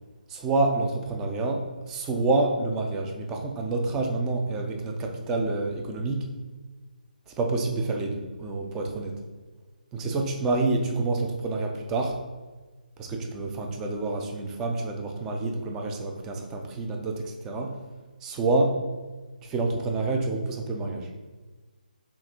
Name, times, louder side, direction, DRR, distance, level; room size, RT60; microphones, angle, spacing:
voice 1, 0.3-6.3 7.4-9.1 9.9-12.2 13.0-17.7 18.2-18.8 19.5-21.1, right 3 dB, 10° right, 2 dB, 0.3 m, -28 dB
6.0 x 2.4 x 3.6 m, 1.3 s
hypercardioid pair, 165°, 5 cm